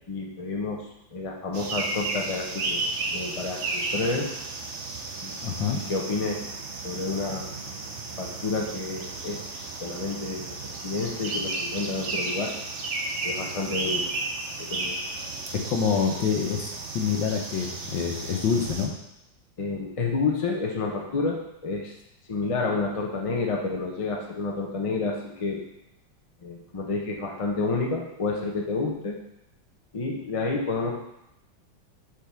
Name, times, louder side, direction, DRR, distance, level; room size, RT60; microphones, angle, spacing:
voice 1, 0.1-0.8 1.1-2.8 3.1-4.3 5.2-5.3 5.7-6.4 6.8-7.5 8.2-9.5 9.8-10.6 10.8-12.5 13.2-14.1 14.6-14.9 19.6-21.9 22.3-25.6 26.4-29.2 29.9-30.9, left 3 dB, 50° left, -1 dB, 0.4 m, -29 dB
sound 1, 1.5-18.9, right 3 dB, 65° right, 0.7 m, -33 dB
voice 2, 5.4-5.8 15.5-18.9, left 6 dB, 70° left, 2 dB, 1.6 m, -26 dB
5.0 x 4.5 x 5.7 m, 0.85 s
omnidirectional pair, 2.2 m